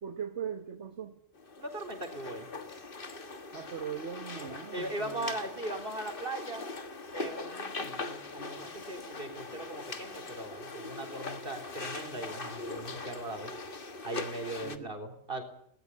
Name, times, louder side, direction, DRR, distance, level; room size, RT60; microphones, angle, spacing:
voice 1, 0.0-1.1 3.5-5.3 14.6-14.9, right 8 dB, 75° right, 7 dB, 1.7 m, -39 dB
sound 1, 1.4-14.8, left 3 dB, 50° left, 1.8 m, -41 dB
voice 2, 1.6-2.5 4.7-6.7 7.1-13.5 14.0-15.4, right 1 dB, 50° right, 7 dB, 4.2 m, -39 dB
19.5 x 19.5 x 10.0 m, 0.68 s
omnidirectional pair, 1.2 m